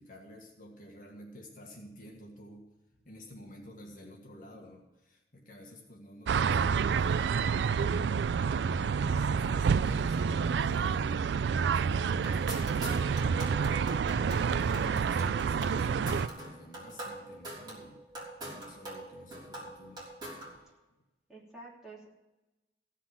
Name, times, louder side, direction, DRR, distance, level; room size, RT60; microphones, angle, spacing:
voice 1, 0.0-2.7 3.1-8.2 8.8-18.0 18.5-20.7, equal, 50° left, 0 dB, 1.8 m, -51 dB
sound 1, 6.3-16.3, right 6 dB, 75° right, 0.3 m, -28 dB
sound 2, 12.1-20.6, right 1 dB, 25° right, 3.6 m, -43 dB
voice 2, 21.3-22.1, right 2 dB, 5° right, -5 dB, 3.1 m, -48 dB
15.5 x 5.8 x 7.6 m, 1.0 s
head